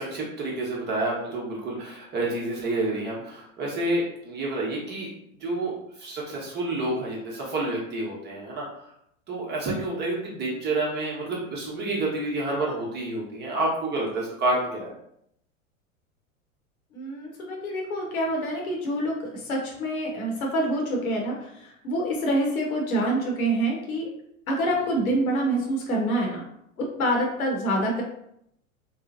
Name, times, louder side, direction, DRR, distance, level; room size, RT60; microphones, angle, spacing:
voice 1, 0.0-5.1 5.4-5.7 6.0-8.7 9.3-14.9 24.7-24.8, right 2 dB, 25° right, -3 dB, 0.8 m, -29 dB
voice 2, 16.9-24.1 24.5-26.4 26.8-28.0, right 1 dB, 80° left, -1 dB, 0.9 m, -26 dB
3.1 x 2.0 x 2.4 m, 0.74 s
hypercardioid pair, 95°, 42 cm